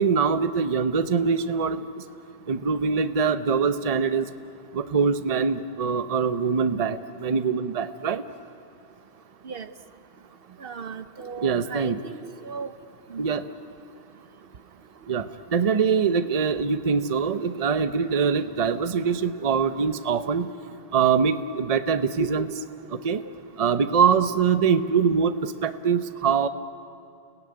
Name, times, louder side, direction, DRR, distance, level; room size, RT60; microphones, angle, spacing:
voice 1, 0.0-1.8 2.5-4.3 4.7-8.2 11.4-12.0 13.2-13.4 15.1-15.3 15.5-20.5 20.9-22.5 22.9-23.2 23.6-26.5, right 6 dB, 35° right, 10 dB, 0.8 m, -23 dB
voice 2, 10.6-12.7 13.1-13.3 22.2-22.3, right 6 dB, 60° right, 11 dB, 1.0 m, -36 dB
30.0 x 17.5 x 9.7 m, 2.6 s
omnidirectional pair, 1.1 m